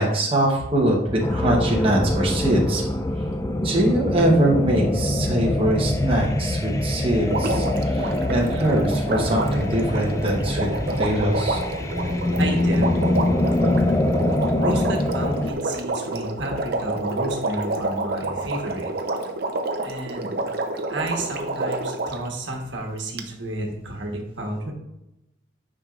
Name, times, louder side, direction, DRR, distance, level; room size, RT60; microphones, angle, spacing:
voice 1, 0.0-2.8 3.6-10.7 11.0-11.6, right 1 dB, 30° right, -2 dB, 1.0 m, -22 dB
sound 1, 1.2-15.5, left 1 dB, 15° left, 0.4 m, -24 dB
Water, 7.3-22.3 23.2-23.3, right 2 dB, 55° right, 0.7 m, -29 dB
voice 2, 12.4-13.0 14.6-18.9 19.8-20.5 20.9-24.7, right 1 dB, 80° right, 1 dB, 1.3 m, -31 dB
9.5 x 4.9 x 2.5 m, 0.89 s
head